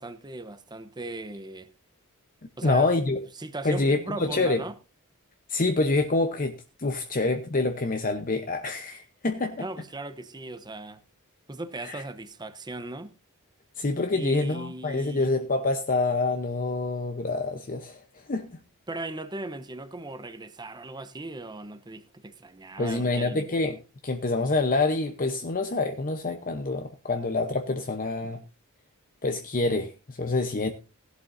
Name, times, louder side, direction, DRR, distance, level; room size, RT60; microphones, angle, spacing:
voice 1, 0.0-1.7 2.6-2.9 3.4-4.7 9.6-11.0 11.5-13.1 14.1-15.3 18.9-23.5, right 2 dB, 20° right, 0.9 m, -38 dB
voice 2, 2.6-3.2 3.6-4.6 5.5-9.7 11.8-12.0 13.8-18.6 22.8-28.4 29.2-30.7, left 3 dB, 40° left, 0.9 m, -27 dB
17.0 x 11.5 x 2.6 m
head